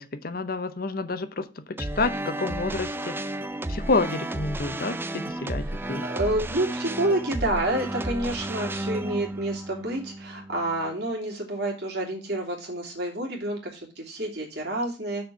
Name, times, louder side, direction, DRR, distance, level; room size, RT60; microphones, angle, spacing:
voice 1, 0.0-3.2 3.7-6.0, left 3 dB, 50° left, 0.7 m, -29 dB
sound 1, 1.8-10.9, right 1 dB, 10° right, 0.4 m, -33 dB
voice 2, 6.0-15.3, right 1 dB, 60° right, 2.8 m, -29 dB
6.4 x 4.4 x 6.1 m
head